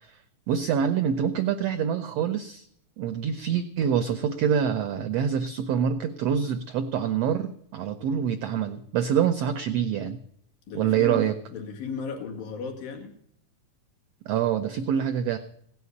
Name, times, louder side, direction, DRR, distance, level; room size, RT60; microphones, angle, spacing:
voice 1, 0.5-2.7 3.0-10.2 10.7-11.3 14.3-15.4, right 8 dB, 85° right, 9 dB, 1.4 m, -26 dB
voice 2, 10.7-13.2, left 5 dB, 90° left, 2 dB, 3.7 m, -35 dB
16.5 x 6.9 x 9.5 m, 0.70 s
omnidirectional pair, 3.8 m